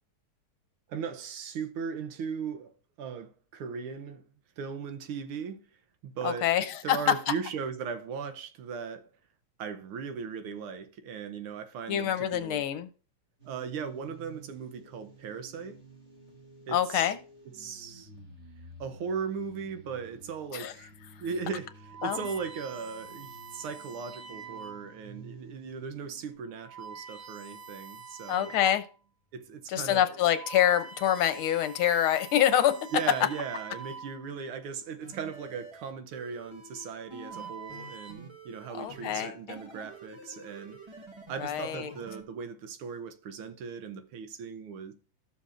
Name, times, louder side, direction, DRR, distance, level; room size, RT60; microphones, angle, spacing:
voice 1, 0.9-4.2 4.6-5.6 6.0-6.5 6.8-9.1 9.6-12.6 13.5-15.8 16.7-17.1 17.6-18.1 18.8-20.9 21.2-21.7 22.0-28.5 29.3-30.1 32.9-41.0 41.3-44.9, right 6 dB, 80° right, 1.7 m, -38 dB
voice 2, 6.2-7.1 11.9-12.9 16.7-17.2 20.5-20.7 22.0-22.2 28.3-28.8 29.7-32.8 38.7-39.6 41.4-41.9, left 11 dB, 80° left, 1.6 m, -26 dB
sound 1, 13.4-26.4, right 3 dB, 35° right, 3.2 m, -52 dB
sound 2, 20.8-21.0 21.6-25.0 25.7-25.9 26.5-29.0 29.4-29.5 30.0-34.5 35.5-35.9 36.8-38.1, right 5 dB, 60° right, 1.6 m, -46 dB
sound 3, 35.0-42.2, right 1 dB, 15° right, 1.1 m, -48 dB
13.0 x 6.9 x 2.5 m
omnidirectional pair, 2.4 m